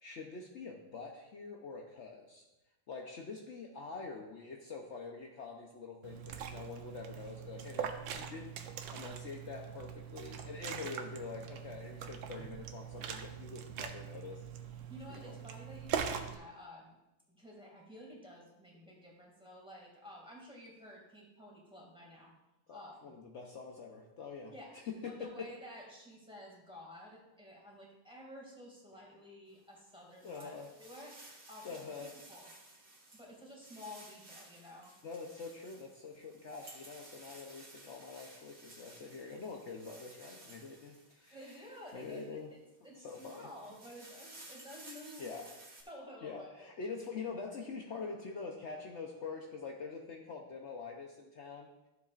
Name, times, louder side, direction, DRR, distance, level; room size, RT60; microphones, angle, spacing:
voice 1, 0.0-2.4 2.9-8.5 8.9-14.8 15.1-15.4 22.7-25.5 30.2-30.7 31.6-32.1 35.0-41.6 41.9-42.5 43.0-43.5 45.2-45.5 46.2-51.7, left 4 dB, 70° left, 1 dB, 0.6 m, -45 dB
Liquid, 6.0-16.4, right 8 dB, 75° right, 1.4 m, -42 dB
voice 2, 14.8-17.0 17.3-22.3 22.7-23.2 24.5-24.7 25.1-31.2 31.5-32.5 33.1-34.9 41.3-45.4 45.9-46.7, left 1 dB, 5° right, -3 dB, 2.0 m, -52 dB
sound 1, 29.6-42.4 42.8-45.8, right 2 dB, 45° right, 2.5 m, -56 dB
14.0 x 7.3 x 2.5 m, 0.98 s
omnidirectional pair, 2.2 m